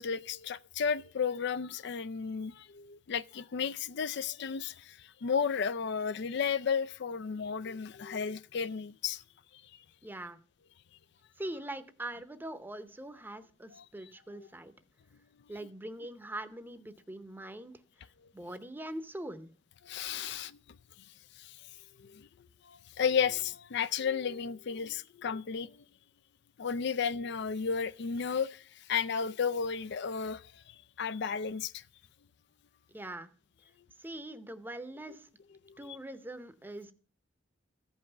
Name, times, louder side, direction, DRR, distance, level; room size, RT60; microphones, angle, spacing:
voice 1, 0.0-9.2 14.3-14.5 19.8-20.6 21.4-21.6 22.0-22.3 22.7-25.8 26.6-28.6 28.9-30.4 31.0-31.8, left 6 dB, 60° left, 0.4 m, -33 dB
voice 2, 10.0-10.4 11.4-14.7 15.5-17.7 18.3-19.5 32.9-33.3 34.0-35.3 35.8-36.9, right 1 dB, 10° right, 0.8 m, -42 dB
14.5 x 5.5 x 6.9 m
head